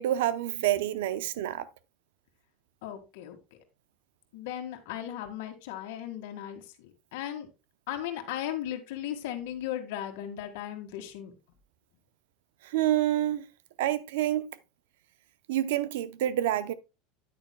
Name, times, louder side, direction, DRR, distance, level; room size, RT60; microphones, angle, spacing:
voice 1, 0.0-1.7 12.6-13.4 13.8-14.5 15.5-16.7, right 13 dB, 90° right, 0.6 m, -27 dB
voice 2, 2.8-3.4 4.3-7.5 7.9-11.3, left 11 dB, 70° left, 1.8 m, -37 dB
9.3 x 9.1 x 2.2 m
supercardioid pair, 165°, 0 cm